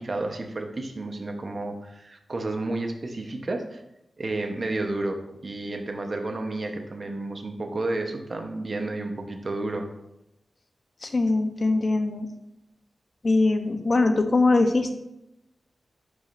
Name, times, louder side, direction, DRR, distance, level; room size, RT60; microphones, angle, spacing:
voice 1, 0.0-3.8 4.2-9.9, right 2 dB, 45° right, 4 dB, 0.9 m, -31 dB
voice 2, 11.0-12.3 13.2-14.9, left 3 dB, 40° left, 6 dB, 0.8 m, -22 dB
11.0 x 5.0 x 2.6 m, 0.87 s
wide cardioid pair, 115°, 0 cm